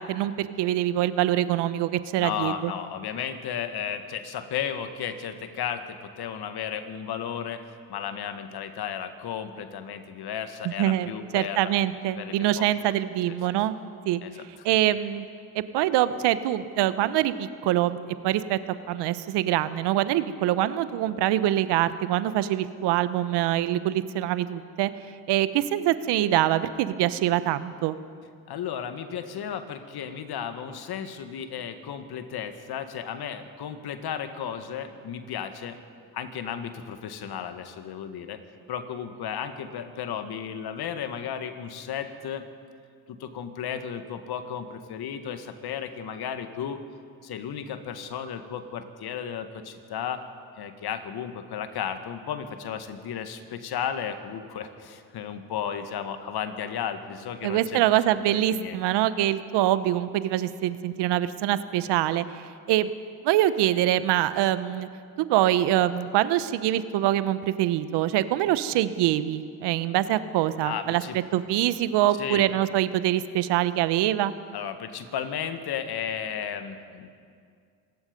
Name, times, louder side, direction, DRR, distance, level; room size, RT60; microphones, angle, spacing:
voice 1, 0.0-2.7 10.8-11.1 11.3-13.8 14.0-14.2 14.6-15.2 15.5-18.0 18.2-18.6 18.9-24.9 25.3-28.0 57.4-62.9 63.2-64.9 65.2-71.0 71.3-74.3, right 13 dB, 70° right, 14 dB, 1.0 m, -24 dB
voice 2, 2.2-11.7 12.1-12.7 13.3-13.4 14.2-14.3 14.6-14.7 28.5-35.8 36.1-38.4 38.7-42.5 43.1-46.8 47.2-50.2 50.6-58.8 70.6-71.2 72.2-72.6 74.5-77.1, left 8 dB, 65° left, 8 dB, 1.8 m, -34 dB
26.0 x 19.0 x 5.3 m, 2.2 s
hypercardioid pair, 55°, 42 cm